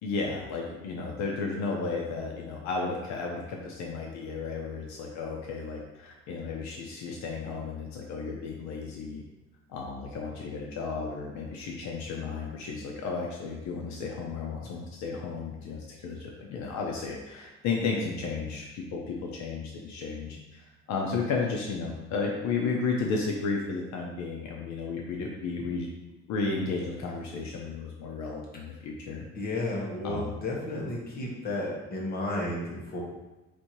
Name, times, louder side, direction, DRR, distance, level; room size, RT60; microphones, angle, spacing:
voice 1, 0.0-9.2 9.7-25.9 26.3-29.2 30.0-30.3, left 4 dB, 70° left, 0 dB, 0.7 m, -33 dB
voice 2, 29.3-33.0, left 1 dB, 30° left, -3 dB, 1.1 m, -32 dB
4.3 x 2.7 x 4.5 m, 1.1 s
cardioid pair, 165°, 29 cm